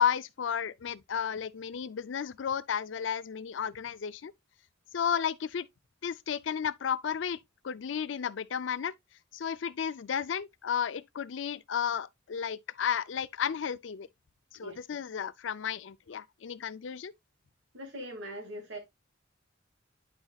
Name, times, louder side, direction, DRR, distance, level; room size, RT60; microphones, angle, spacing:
voice 1, 0.0-4.3 4.9-5.7 6.0-7.4 7.6-8.9 9.3-14.1 14.6-17.1, left 8 dB, 70° left, 0.4 m, -33 dB
voice 2, 17.7-18.8, equal, 85° right, 2.4 m, -41 dB
9.7 x 5.2 x 2.3 m
head